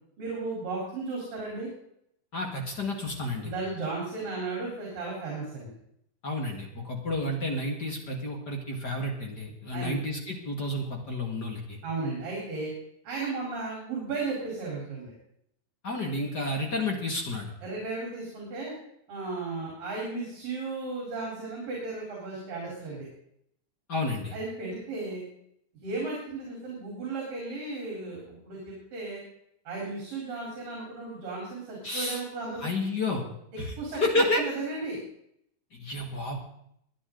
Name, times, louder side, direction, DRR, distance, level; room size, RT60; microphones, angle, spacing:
voice 1, 0.2-1.7 3.4-5.7 9.7-10.0 11.8-12.7 13.0-15.1 17.6-18.8 19.1-23.1 24.3-25.2 25.8-29.2 29.7-32.7 33.8-34.0 34.4-35.0, right 3 dB, 70° right, -3 dB, 5.7 m, -35 dB
voice 2, 2.3-3.5 6.2-11.8 15.8-17.5 23.9-24.3 31.8-32.2 32.6-33.2 33.6-33.7 34.0-34.4 35.7-36.4, left 2 dB, 35° left, 1 dB, 2.1 m, -30 dB
22.0 x 10.0 x 3.9 m, 0.72 s
omnidirectional pair, 4.1 m